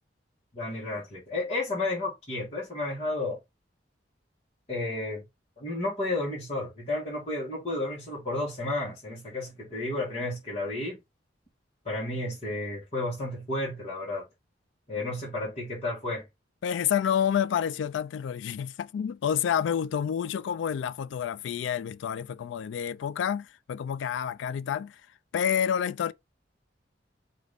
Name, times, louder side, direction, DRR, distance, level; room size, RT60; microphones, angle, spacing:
voice 1, 0.5-3.4 4.7-5.2 5.6-11.0 11.8-14.2 14.9-16.2, left 2 dB, 35° left, 1.5 m, -32 dB
voice 2, 16.6-25.0 25.3-26.1, left 8 dB, 85° left, 0.3 m, -29 dB
4.9 x 2.6 x 3.4 m
head